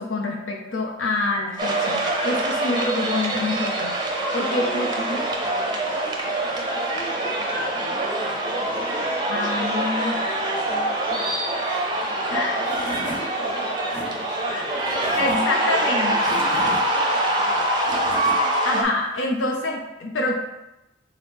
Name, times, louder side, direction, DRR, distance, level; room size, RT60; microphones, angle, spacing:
voice 1, 0.0-3.9 4.3-5.2 9.3-10.2 12.3-12.6 14.5-14.7 15.2-16.1 18.6-20.3, left 2 dB, 85° left, 1 dB, 0.6 m, -26 dB
sound 1, 1.6-18.8, right 1 dB, 25° right, 0.5 m, -24 dB
voice 2, 4.1-9.8 10.4-11.4 12.1-17.7, equal, 25° left, -4 dB, 1.1 m, -37 dB
Tools / Wood, 12.3-12.4 12.6-13.2 13.7-14.0 14.8-15.4 16.0-16.8 17.6-18.4, equal, 60° left, 1.3 m, -35 dB
3.6 x 3.1 x 3.5 m, 0.93 s
head